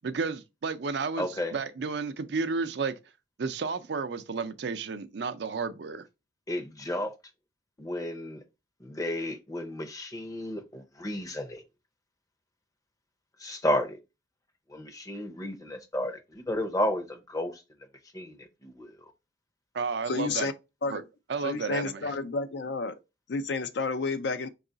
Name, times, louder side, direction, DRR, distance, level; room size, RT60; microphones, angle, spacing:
voice 1, 0.0-2.9 3.4-6.1 19.7-20.5 20.9-21.0 21.3-22.1, right 4 dB, 60° right, 0.4 m, -32 dB
voice 2, 1.2-1.5 6.5-7.1 7.8-8.4 8.8-11.6 13.4-14.0 14.7-17.6 18.1-18.9, left 1 dB, 20° left, 0.6 m, -32 dB
voice 3, 20.1-20.5 20.8-21.1 21.4-23.0 23.3-24.5, left 3 dB, 60° left, 0.5 m, -30 dB
4.7 x 2.4 x 3.8 m
head